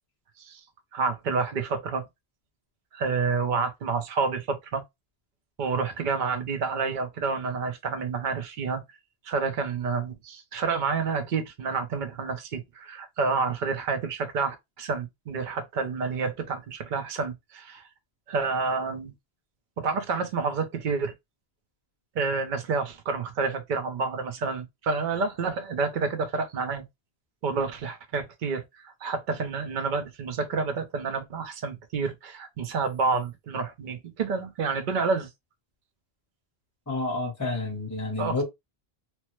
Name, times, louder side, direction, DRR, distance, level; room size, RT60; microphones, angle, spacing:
voice 1, 0.9-2.0 2.9-4.8 5.6-8.8 9.2-17.8 18.3-19.1 19.8-21.1 22.2-26.9 27.4-35.3 38.2-38.4, right 4 dB, 55° right, 0.7 m, -29 dB
voice 2, 36.9-38.4, left 2 dB, 15° left, 0.8 m, -29 dB
3.1 x 2.0 x 3.0 m
omnidirectional pair, 1.1 m